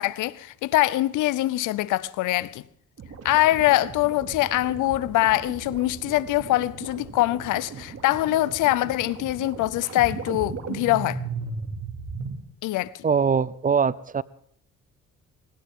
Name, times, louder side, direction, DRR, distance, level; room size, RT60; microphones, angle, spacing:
voice 1, 0.0-2.6 3.2-11.2 12.6-13.0, left 16 dB, 90° left, 0.7 m, -23 dB
sound 1, 3.0-12.4, right 4 dB, 55° right, 2.7 m, -37 dB
voice 2, 13.0-14.2, right 6 dB, 30° right, 0.6 m, -22 dB
20.5 x 17.5 x 3.7 m
cardioid pair, 90°, 30 cm